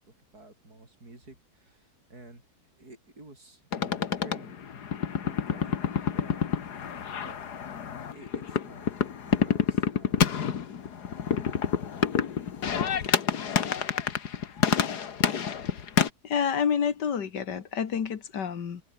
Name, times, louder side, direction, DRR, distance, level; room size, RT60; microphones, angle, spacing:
voice 1, 0.3-2.4 2.8-4.5 5.2-6.4 7.2-7.5 8.1-8.9 9.2-10.3, right 2 dB, 60° right, 7.1 m, -51 dB
sound 1, 3.7-16.1, left 7 dB, 70° left, 2.0 m, -28 dB
voice 2, 16.2-18.8, left 7 dB, 90° left, 2.3 m, -28 dB
omnidirectional pair, 1.8 m